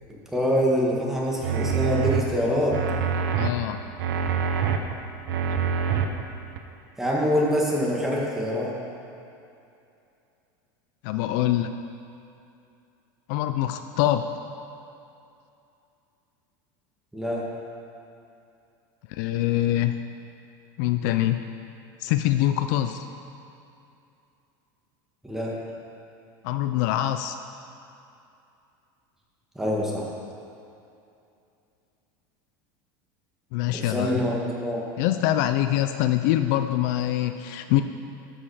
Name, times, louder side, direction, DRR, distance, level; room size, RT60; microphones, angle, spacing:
voice 1, 0.3-2.8 7.0-8.7 17.1-17.4 25.2-25.5 29.5-30.0 33.7-34.8, equal, 5° right, -4 dB, 1.7 m, -25 dB
sound 1, 1.4-2.2 2.7-3.5 4.0-4.8 5.3-6.0 6.6-6.7, right 7 dB, 80° right, 0.8 m, -25 dB
voice 2, 3.4-3.8 11.0-11.7 13.3-14.3 19.1-20.0 20.8-21.4 22.0-23.0 26.4-27.4 33.5-34.2 35.0-37.8, left 13 dB, 65° left, 9 dB, 0.4 m, -24 dB
13.0 x 5.4 x 4.9 m, 2.7 s
supercardioid pair, 140°, 11 cm